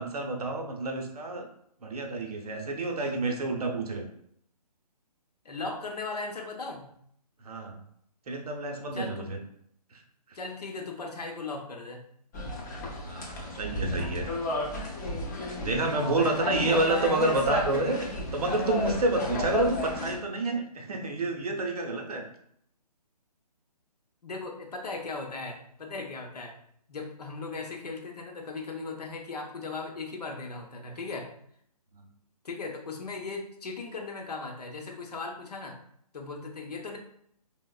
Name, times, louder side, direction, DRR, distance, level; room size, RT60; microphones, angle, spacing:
voice 1, 0.0-1.5 1.8-4.1 7.4-7.8 8.3-9.4 9.9-10.0 13.0-14.3 15.6-18.1 18.3-22.2 31.9-32.0, right 2 dB, 65° right, 3 dB, 0.6 m, -29 dB
voice 2, 5.4-6.9 8.9-9.3 10.3-12.0 16.6-17.2 24.2-26.5 26.9-31.3 32.4-35.8 36.1-37.0, left 3 dB, 75° left, 2 dB, 0.6 m, -37 dB
sound 1, 12.3-20.2, left 2 dB, 30° left, 0.5 m, -33 dB
3.0 x 2.0 x 2.2 m, 0.68 s
figure-of-eight pair, 145°, 21 cm